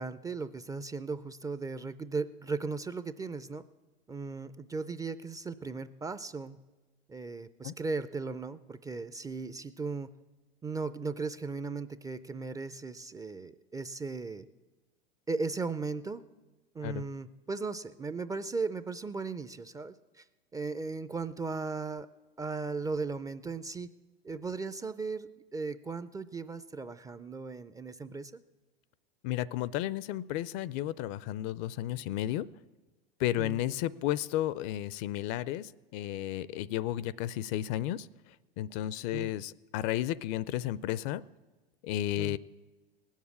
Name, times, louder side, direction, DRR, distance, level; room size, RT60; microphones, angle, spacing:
voice 1, 0.0-3.6 4.1-6.6 7.1-10.1 10.6-14.5 15.3-16.2 16.7-20.2 20.5-22.1 22.4-23.9 24.2-28.4 33.4-33.6 39.1-39.3 42.2-42.4, right 4 dB, 10° right, 13 dB, 0.4 m, -37 dB
voice 2, 29.2-32.5 33.2-38.1 38.6-41.2 41.8-42.4, left 13 dB, 45° left, 20 dB, 0.5 m, -33 dB
18.5 x 7.3 x 8.5 m, 1.2 s
hypercardioid pair, 90°, 30 cm